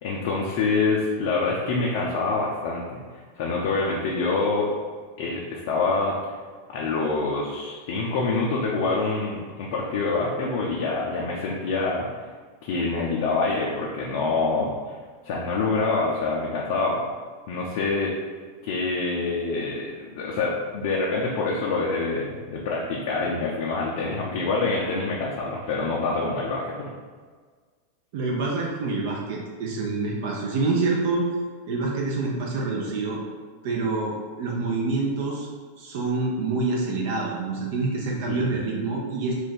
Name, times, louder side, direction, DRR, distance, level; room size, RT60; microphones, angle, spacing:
voice 1, 0.0-3.0 3.4-4.7 5.2-6.2 6.7-12.1 12.6-14.7 15.2-17.0 17.5-18.1 18.6-26.9 38.3-38.5, left 3 dB, 60° left, -3 dB, 0.5 m, -26 dB
voice 2, 28.1-31.3 31.7-33.2 33.6-35.5 35.8-39.3, right 3 dB, 60° right, -2 dB, 0.5 m, -26 dB
2.5 x 2.3 x 3.6 m, 1.5 s
hypercardioid pair, 95°, 0 cm